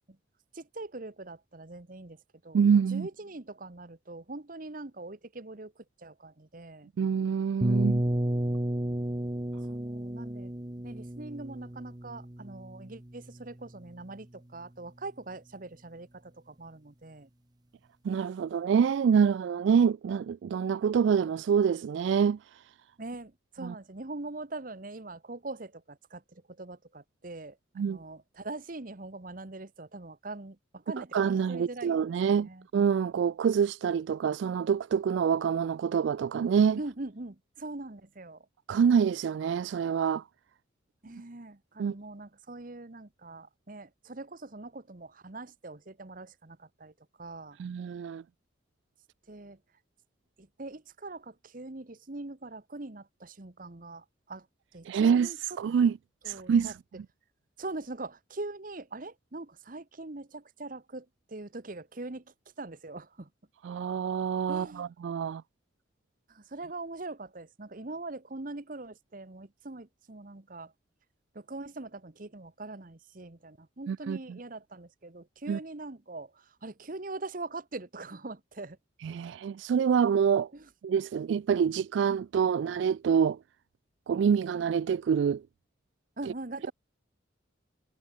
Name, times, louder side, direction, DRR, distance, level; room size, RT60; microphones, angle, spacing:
voice 1, 0.5-2.6 2.9-6.9 9.7-10.5 10.8-17.3 23.0-32.7 36.8-38.5 41.0-46.9 47.2-47.6 49.3-49.6 50.4-54.5 54.7-55.4 56.2-56.7 57.6-63.3 64.5-64.9 66.3-70.7 71.3-78.8 80.5-80.7 86.2-86.7, right 2 dB, 45° right, 1.2 m, -42 dB
voice 2, 2.5-3.1 7.0-8.0 18.0-22.6 23.6-23.7 27.8-28.0 31.0-36.8 38.7-40.2 41.8-41.9 47.6-48.2 54.9-56.0 56.2-56.7 63.6-65.4 73.9-74.2 75.5-75.6 79.0-80.5 80.8-83.4 84.1-85.4, right 7 dB, 70° right, 0.3 m, -26 dB
sound 1, 7.6-13.4, right 1 dB, 20° right, 1.1 m, -32 dB
head